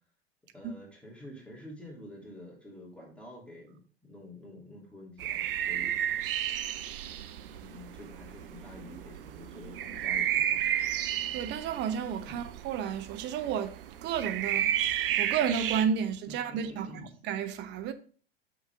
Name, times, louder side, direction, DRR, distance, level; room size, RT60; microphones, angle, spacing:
voice 1, 0.5-6.0 7.5-10.7 12.3-12.4 16.3-17.1, left 1 dB, 5° left, 2.7 m, -48 dB
sound 1, 5.2-15.8, right 11 dB, 60° right, 0.7 m, -32 dB
voice 2, 11.3-13.7 14.0-14.7 15.2-16.9 17.2-17.9, right 8 dB, 35° right, 0.8 m, -31 dB
6.6 x 6.1 x 3.4 m
figure-of-eight pair, 85°, 31 cm